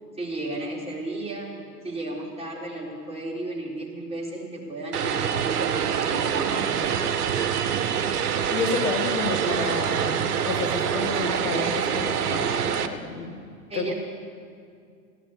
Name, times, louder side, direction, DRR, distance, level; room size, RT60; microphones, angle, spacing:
voice 1, 0.1-1.5 1.8-7.0 13.7-13.9, right 2 dB, 10° right, -4 dB, 4.1 m, -34 dB
Vehicle, 4.9-12.9, right 8 dB, 65° right, 1.1 m, -25 dB
voice 2, 8.5-13.4 13.7-13.9, left 4 dB, 60° left, 6 dB, 1.7 m, -30 dB
16.5 x 10.0 x 8.3 m, 2.2 s
figure-of-eight pair, 100°, 49 cm